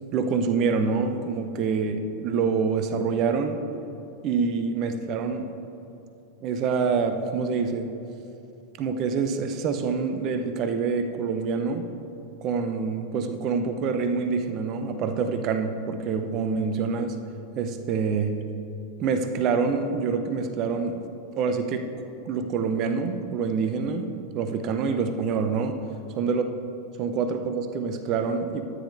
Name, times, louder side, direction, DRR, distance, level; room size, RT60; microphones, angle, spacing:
voice 1, 0.1-3.6 4.2-5.5 6.4-7.9 8.8-11.8 12.4-17.2 17.6-18.3 19.0-21.0 21.3-21.9 22.3-24.1 24.3-25.8 26.2-26.4 27.0-28.6, right 5 dB, 35° right, 7 dB, 0.6 m, -26 dB
13.0 x 9.3 x 2.6 m, 2.9 s
figure-of-eight pair, 90°, 0 cm